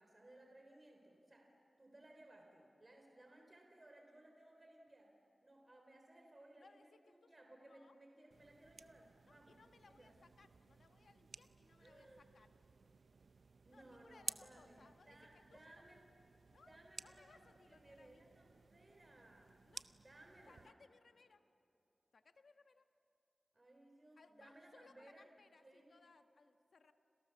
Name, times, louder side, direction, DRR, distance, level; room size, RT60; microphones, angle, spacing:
voice 1, 0.0-1.5 1.8-5.1 5.4-9.6 9.8-10.1 11.8-12.3 13.6-16.0 16.6-19.6 19.9-20.8 23.5-25.3 25.6-26.0, right 1 dB, 30° right, 2 dB, 3.7 m, -62 dB
voice 2, 6.6-8.0 9.2-12.5 13.7-15.9 16.5-18.2 19.6-19.8 20.5-21.4 22.1-22.9 24.2-26.9, left 4 dB, 75° left, 8 dB, 1.3 m, -67 dB
sound 1, 8.3-20.7, right 4 dB, 65° right, 0.6 m, -56 dB
30.0 x 27.0 x 7.0 m, 3.0 s
wide cardioid pair, 110°, 0 cm